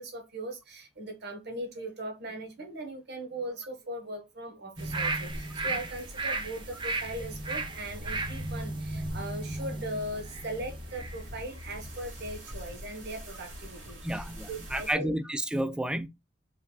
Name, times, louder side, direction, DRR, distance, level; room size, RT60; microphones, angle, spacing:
voice 1, 0.0-15.2, right 1 dB, 60° right, 1.4 m, -39 dB
sound 1, 4.8-11.2 11.6-11.7, right 3 dB, 25° right, 0.8 m, -35 dB
sound 2, 4.8-14.9, equal, 75° right, 2.3 m, -45 dB
voice 2, 14.0-16.1, right 1 dB, 5° right, 0.3 m, -31 dB
4.7 x 3.6 x 2.3 m
head